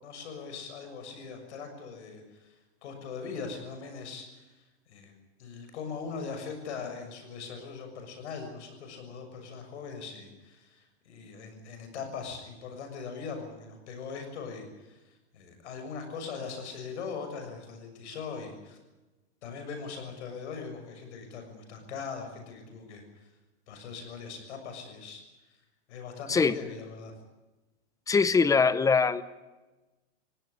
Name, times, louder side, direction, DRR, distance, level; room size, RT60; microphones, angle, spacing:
voice 1, 0.0-4.5 4.9-5.1 5.4-15.0 15.3-18.8 19.4-23.0 23.7-25.2 25.9-27.1, left 5 dB, 80° left, 5 dB, 6.8 m, -40 dB
voice 2, 28.1-29.2, left 5 dB, 10° left, 15 dB, 0.8 m, -22 dB
19.5 x 17.0 x 9.9 m, 1.1 s
supercardioid pair, 145°, 34 cm